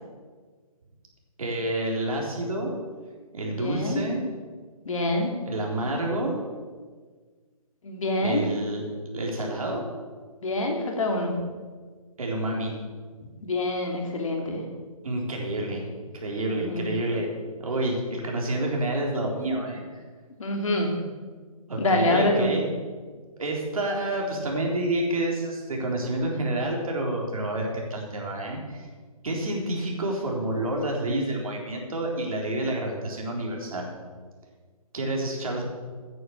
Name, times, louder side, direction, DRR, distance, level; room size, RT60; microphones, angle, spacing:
voice 1, 1.4-2.7 3.3-4.2 5.5-6.4 8.2-8.8 9.1-9.8 12.2-12.7 15.0-15.9 16.1-17.3 17.6-20.0 21.7-22.6 23.4-28.9 29.2-33.9 34.9-35.6, right 1 dB, 65° right, 0 dB, 3.8 m, -28 dB
voice 2, 3.5-4.0 4.8-5.4 7.8-8.4 10.4-11.3 13.4-14.6 16.5-16.9 20.4-20.9 21.8-22.5, left 1 dB, 60° left, 2 dB, 2.9 m, -26 dB
9.5 x 9.2 x 7.2 m, 1.5 s
hypercardioid pair, 165°, 19 cm